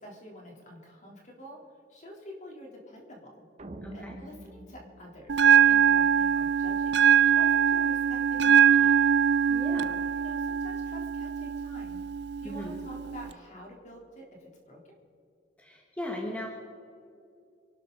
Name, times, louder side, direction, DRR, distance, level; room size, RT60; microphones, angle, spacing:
voice 1, 0.0-1.6 1.9-3.4 3.9-7.0 7.3-9.0 10.1-12.0 12.4-15.0, equal, 45° left, -1 dB, 3.7 m, -47 dB
sound 1, 3.6-6.0, right 1 dB, 40° right, 1.0 m, -46 dB
voice 2, 3.8-4.2 9.5-10.1 12.4-12.8 15.6-16.5, left 1 dB, 10° left, -1 dB, 1.7 m, -38 dB
Bell, 5.3-13.3, right 8 dB, 70° right, 0.5 m, -23 dB
27.0 x 12.0 x 4.1 m, 2.5 s
head